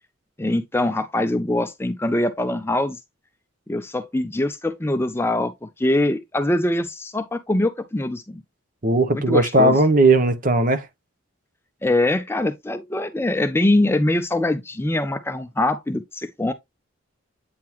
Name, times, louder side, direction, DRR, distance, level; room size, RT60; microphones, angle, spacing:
voice 1, 0.4-3.0 3.7-8.4 9.1-9.8 11.8-16.5, left 1 dB, 10° left, 0.4 m, -23 dB
voice 2, 8.8-10.9, right 2 dB, 40° right, 0.8 m, -17 dB
8.5 x 3.7 x 3.0 m
head